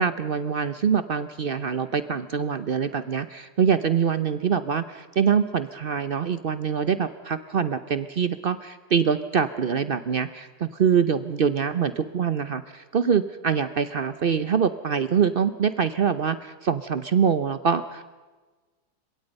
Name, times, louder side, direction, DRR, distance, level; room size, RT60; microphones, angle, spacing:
voice 1, 0.0-18.1, right 7 dB, 75° right, 12 dB, 0.5 m, -24 dB
30.0 x 17.0 x 5.3 m, 1.3 s
omnidirectional pair, 2.0 m